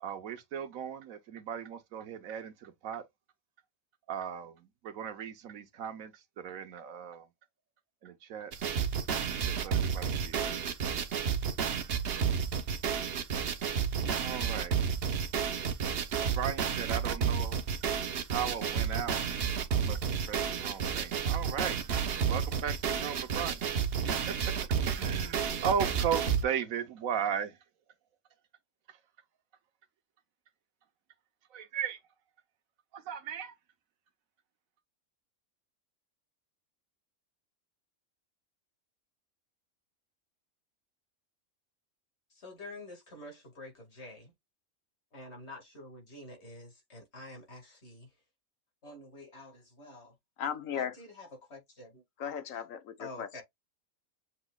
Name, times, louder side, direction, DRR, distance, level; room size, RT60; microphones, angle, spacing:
voice 1, 0.0-3.0 4.1-4.5 4.8-7.3 8.0-8.5 9.5-10.6 14.2-14.8 16.2-17.6 18.3-19.2 19.7-20.0 20.3-21.8 22.3-23.6 24.3-24.5 25.0-27.5 31.5-32.0 32.9-33.5, right 8 dB, 90° right, 1.3 m, -36 dB
sound 1, 8.5-26.4, right 7 dB, 55° right, 0.9 m, -31 dB
voice 2, 42.4-44.3 45.1-48.1 48.8-50.1 50.8-52.0 53.0-53.4, left 2 dB, 55° left, 2.3 m, -48 dB
voice 3, 50.4-51.0 52.2-53.4, left 8 dB, 80° left, 1.3 m, -36 dB
7.2 x 2.9 x 2.3 m
omnidirectional pair, 1.4 m